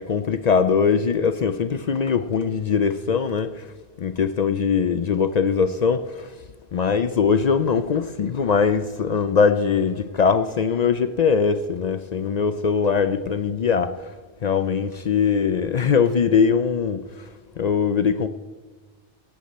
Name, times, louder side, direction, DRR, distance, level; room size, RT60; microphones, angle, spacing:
voice 1, 0.0-3.7 4.0-6.3 6.7-14.1 14.4-17.3 17.6-18.3, left 6 dB, 60° left, 0.4 m, -21 dB
17.5 x 8.5 x 4.2 m
omnidirectional pair, 1.2 m